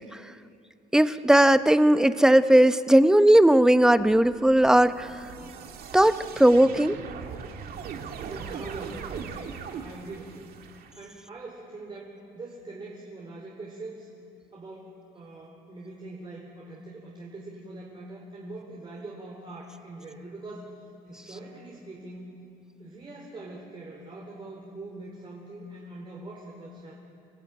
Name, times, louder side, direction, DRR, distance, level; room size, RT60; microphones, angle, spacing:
voice 1, 0.9-5.1 5.9-7.0, right 1 dB, 5° right, 12 dB, 0.7 m, -18 dB
sound 1, 3.8-10.9, right 6 dB, 65° right, 2.2 m, -40 dB
voice 2, 8.2-10.4 11.0-14.1 14.5-20.7 21.0-22.3 22.8-26.9, right 2 dB, 30° right, -2 dB, 4.1 m, -42 dB
27.5 x 17.5 x 9.0 m, 2.6 s
cardioid pair, 110°, 17 cm